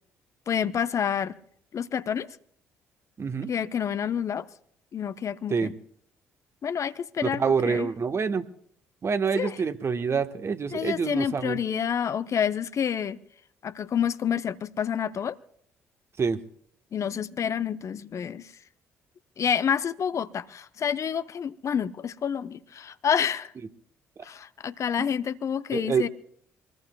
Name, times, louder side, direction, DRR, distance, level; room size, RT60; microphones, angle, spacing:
voice 1, 0.5-1.3 1.7-2.4 3.5-4.5 4.9-5.7 6.6-7.9 9.3-9.6 10.7-13.2 13.6-15.4 16.9-18.5 19.4-23.5 24.2-26.1, left 8 dB, 45° left, 0.8 m, -28 dB
voice 2, 3.2-3.5 5.5-5.7 7.2-8.4 9.0-11.6 16.2-16.4 24.2-24.3 25.0-25.1 25.7-26.1, right 5 dB, 40° right, 1.4 m, -26 dB
25.0 x 20.0 x 2.3 m
figure-of-eight pair, 45°, 7 cm